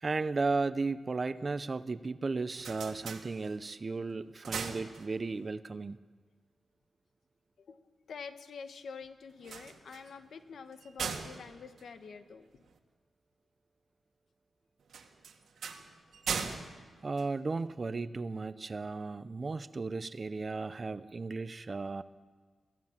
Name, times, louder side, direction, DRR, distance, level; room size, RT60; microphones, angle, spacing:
voice 1, 0.0-6.0 17.0-22.0, right 3 dB, 35° right, 14 dB, 0.7 m, -35 dB
sound 1, 2.3-3.8 4.2-5.5 9.3-12.8 14.9-17.9, right 6 dB, 90° right, 1.9 m, -41 dB
voice 2, 8.1-12.6, left 5 dB, 80° left, 9 dB, 1.3 m, -47 dB
24.5 x 16.5 x 7.3 m, 1.5 s
wide cardioid pair, 145°, 0 cm